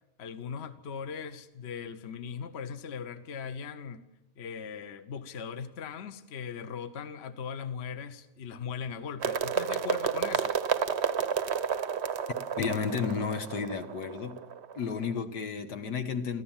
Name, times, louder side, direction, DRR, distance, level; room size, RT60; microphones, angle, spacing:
voice 1, 0.2-4.0 4.4-10.5, left 6 dB, 45° left, 1.1 m, -39 dB
sound 1, 9.2-15.1, right 7 dB, 50° right, 0.9 m, -31 dB
voice 2, 12.6-14.4 14.8-16.4, left 6 dB, 80° left, 1.8 m, -32 dB
25.0 x 14.5 x 7.4 m
omnidirectional pair, 1.8 m